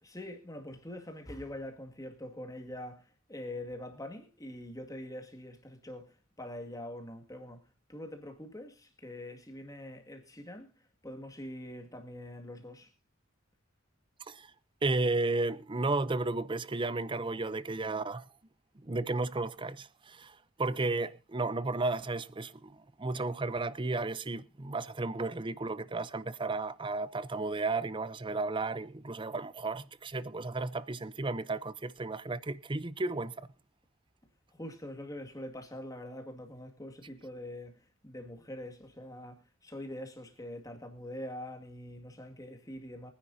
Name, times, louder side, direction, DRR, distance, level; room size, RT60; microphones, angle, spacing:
voice 1, 0.0-7.6 7.9-10.7 11.0-12.9 34.5-43.1, left 1 dB, 15° left, 2.1 m, -44 dB
voice 2, 14.8-18.3 18.8-33.3, right 3 dB, 25° right, 0.6 m, -33 dB
24.0 x 10.0 x 2.7 m
head